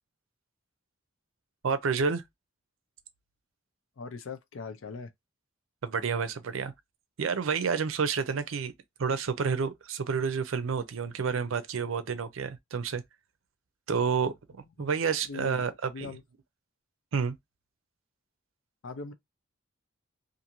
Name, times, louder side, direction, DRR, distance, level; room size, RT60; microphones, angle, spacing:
voice 1, 1.6-2.2 5.8-6.7 7.2-8.7 9.0-13.0 13.9-14.3 14.8-16.2 17.1-17.4, right 5 dB, 75° right, 0.5 m, -29 dB
voice 2, 4.0-5.1 14.8-14.9 15.3-16.2 18.8-19.1, left 4 dB, 70° left, 0.5 m, -41 dB
2.5 x 2.5 x 2.9 m
head